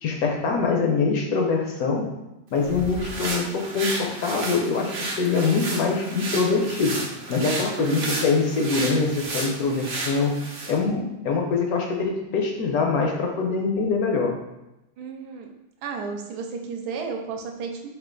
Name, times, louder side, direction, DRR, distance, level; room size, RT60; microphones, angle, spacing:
voice 1, 0.0-2.1 2.5-7.0 7.3-10.4 10.7-14.3, left 4 dB, 70° left, 1 dB, 1.0 m, -24 dB
sound 1, 2.5-10.8, right 2 dB, 60° right, 0.5 m, -32 dB
voice 2, 7.8-8.2 15.0-15.5 15.8-17.9, right 5 dB, 75° right, 3 dB, 1.1 m, -33 dB
4.5 x 2.4 x 3.7 m, 0.93 s
omnidirectional pair, 1.8 m